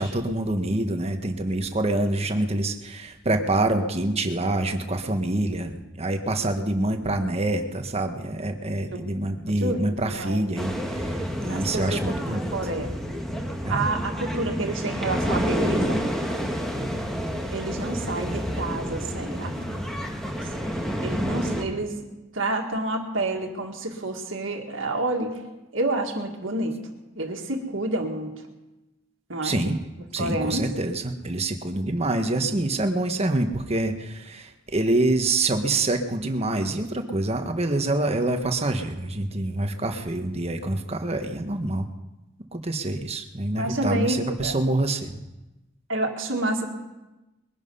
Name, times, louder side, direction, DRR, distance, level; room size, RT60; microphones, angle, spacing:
voice 1, 0.0-12.5 13.6-13.9 29.4-29.8 30.1-41.9 42.5-45.2, right 2 dB, 30° right, 6 dB, 1.3 m, -26 dB
voice 2, 9.6-10.4 11.5-12.9 13.7-16.0 17.5-19.5 21.0-21.9 22.3-25.4 25.7-26.8 27.2-28.4 29.3-29.6 30.2-30.7 43.6-44.6 45.9-46.7, right 2 dB, 70° right, 2 dB, 2.0 m, -29 dB
sound 1, 10.6-21.6, equal, ahead, 1.6 m, -29 dB
21.5 x 11.0 x 5.5 m, 1.0 s
head